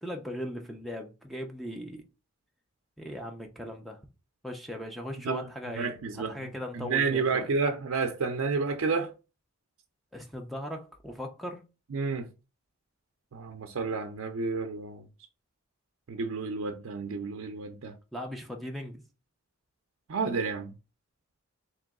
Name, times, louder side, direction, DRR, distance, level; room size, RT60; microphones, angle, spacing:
voice 1, 0.0-2.0 3.0-4.0 4.4-7.5 10.1-11.6 18.1-19.0, equal, ahead, 0.6 m, -38 dB
voice 2, 5.7-6.3 6.7-9.1 11.9-12.3 13.3-15.0 16.1-17.9 20.1-20.7, right 4 dB, 85° right, 0.5 m, -30 dB
3.8 x 3.0 x 3.6 m
head